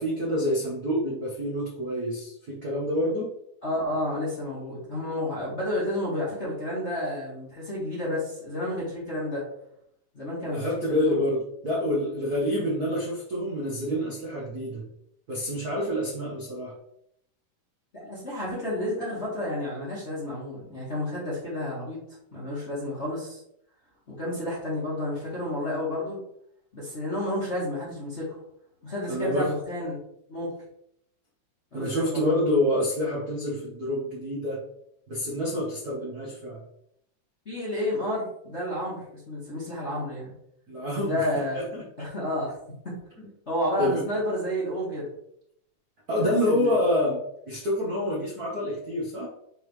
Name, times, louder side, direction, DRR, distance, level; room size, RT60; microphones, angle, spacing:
voice 1, 0.0-3.3 10.5-14.9 15.3-16.7 29.1-29.5 31.7-34.6 35.1-36.6 40.7-41.2 41.5-41.8 43.2-43.3 43.8-44.0 46.1-47.2 47.5-49.3, left 1 dB, 50° right, -5 dB, 1.1 m, -27 dB
voice 2, 3.6-9.4 10.1-11.2 17.9-22.0 22.3-23.4 24.1-26.2 26.7-28.4 28.8-30.0 30.3-30.5 31.7-32.5 37.4-40.3 41.0-41.6 42.0-42.5 42.8-42.9 43.5-45.1 46.2-46.8, left 1 dB, 30° left, -7 dB, 1.5 m, -31 dB
7.9 x 3.9 x 3.3 m, 0.74 s
omnidirectional pair, 3.7 m